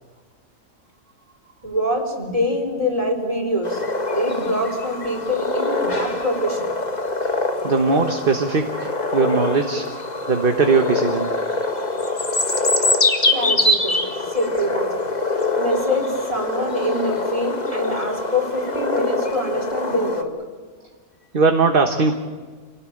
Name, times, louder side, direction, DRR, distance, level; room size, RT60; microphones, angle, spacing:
voice 1, 1.6-3.8 4.1-6.8 13.3-15.0 15.6-20.3, left 1 dB, 20° right, 1 dB, 4.0 m, -24 dB
sound 1, 3.6-20.2, left 2 dB, 30° left, 1.7 m, -24 dB
voice 2, 7.2-9.9 10.3-11.3 21.3-22.1, right 4 dB, 40° right, 5 dB, 1.4 m, -20 dB
27.5 x 18.0 x 8.7 m, 1.5 s
omnidirectional pair, 1.6 m